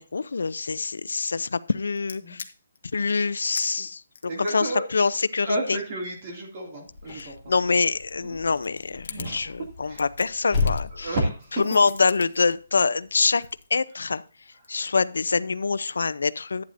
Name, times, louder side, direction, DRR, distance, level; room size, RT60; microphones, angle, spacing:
voice 1, 0.0-2.4 2.9-4.0 4.4-5.8 7.1-11.2 11.7-13.5 13.7-14.2 14.7-16.6, left 4 dB, 85° left, 16 dB, 0.5 m, -25 dB
sound 1, 2.0-2.8 3.1-3.2 3.5-3.7 4.1-6.5 7.0-8.2 8.5-9.3 9.8-11.1 11.9-12.5 13.3-14.3 14.6-15.0, left 5 dB, 50° left, 1.0 m, -43 dB
voice 2, 4.3-4.8 5.4-7.5 8.2-8.4 9.1-9.5 9.8-10.0 10.9-11.6 13.3-13.4, right 1 dB, 25° right, 0 dB, 2.4 m, -31 dB
sound 2, 6.9-13.6, left 4 dB, 10° left, 1.9 m, -34 dB
11.5 x 9.1 x 2.6 m, 0.38 s
hypercardioid pair, 180°, 0 cm